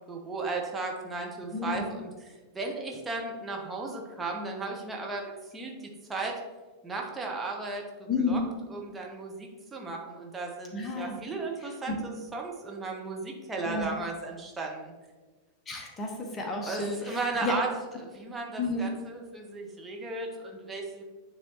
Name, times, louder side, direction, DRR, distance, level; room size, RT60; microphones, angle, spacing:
voice 1, 0.1-2.1 2.5-5.7 6.1-6.3 6.8-8.4 8.7-14.9 16.7-21.0, right 3 dB, 15° right, 0 dB, 0.9 m, -35 dB
voice 2, 1.5-1.9 8.1-8.5 10.7-11.2 11.6-12.0 13.7-13.9 15.7-17.5 18.6-18.9, left 3 dB, 20° left, 2 dB, 0.9 m, -31 dB
9.7 x 3.3 x 3.0 m, 1.3 s
figure-of-eight pair, 90°, 0 cm